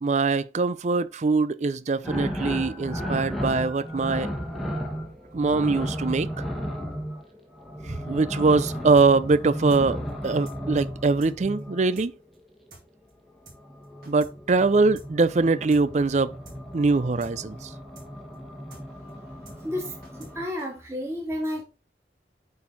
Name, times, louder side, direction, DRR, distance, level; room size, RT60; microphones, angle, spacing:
voice 1, 0.0-4.3 5.3-6.3 7.9-12.1 14.1-16.3 16.7-17.7, right 3 dB, 40° right, 0.4 m, -23 dB
sound 1, 2.0-12.0 13.5-20.4, equal, ahead, 1.4 m, -34 dB
sound 2, 9.0-9.1 9.3-9.4 9.7-9.8 10.1-10.2 10.5-10.6 10.8-10.9 11.2-11.3 11.6-11.7 12.0-12.1 12.3-12.4 12.7-12.8 13.1-13.2 13.5-13.6 13.8-14.3 14.6-14.7 15.0-15.1 15.3-15.4 15.7-16.1 16.5-16.6 16.8-16.9 17.2-17.3 17.6-17.7 18.0-18.1 18.3-18.4 18.7-18.8 19.1-19.2 19.5-19.6 19.8-20.3 20.6-20.7, right 2 dB, 55° right, 3.4 m, -49 dB
voice 2, 19.6-21.6, left 1 dB, 15° right, 2.6 m, -32 dB
8.6 x 4.4 x 4.0 m
head